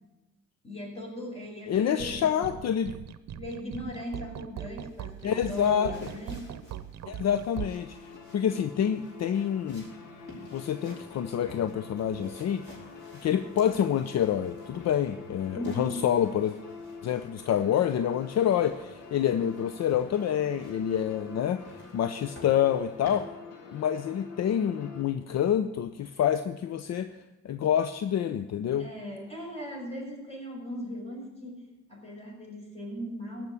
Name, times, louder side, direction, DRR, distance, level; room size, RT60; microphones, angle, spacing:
voice 1, 0.6-2.3 3.3-6.5 15.5-16.1 28.8-33.4, equal, 20° left, -1 dB, 5.9 m, -38 dB
voice 2, 1.7-3.0 5.2-5.9 7.1-8.0 8.3-9.9 10.5-12.6 13.2-16.5 17.0-21.6 21.9-23.3 23.7-27.1 27.4-28.9, left 9 dB, 60° left, 10 dB, 0.7 m, -27 dB
sound 1, 1.9-7.7, right 11 dB, 60° right, 0.8 m, -40 dB
sound 2, 4.8-23.2, equal, 40° left, 5.9 m, -52 dB
sound 3, 7.5-25.0, left 4 dB, 90° left, 1.8 m, -47 dB
14.5 x 6.1 x 9.8 m, 1.1 s
cardioid pair, 90°, 30 cm